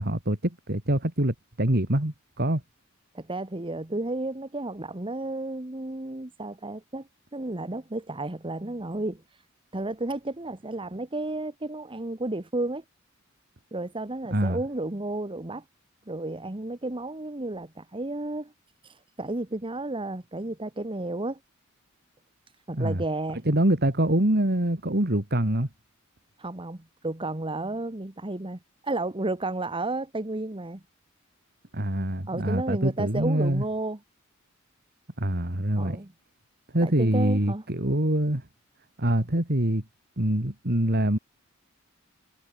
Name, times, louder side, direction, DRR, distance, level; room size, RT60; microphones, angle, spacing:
voice 1, 0.0-2.6 14.3-14.6 22.7-23.0 23.4-25.7 31.7-33.6 35.2-36.0 36.7-38.4 39.0-39.8 40.2-41.2, right 1 dB, 50° right, 3.1 m, -25 dB
voice 2, 3.1-9.2 9.7-12.8 13.7-15.6 16.1-18.5 18.8-21.4 22.7-23.4 26.4-30.8 32.3-34.0 35.8-36.1 36.8-37.6, right 2 dB, 25° right, 1.3 m, -32 dB
head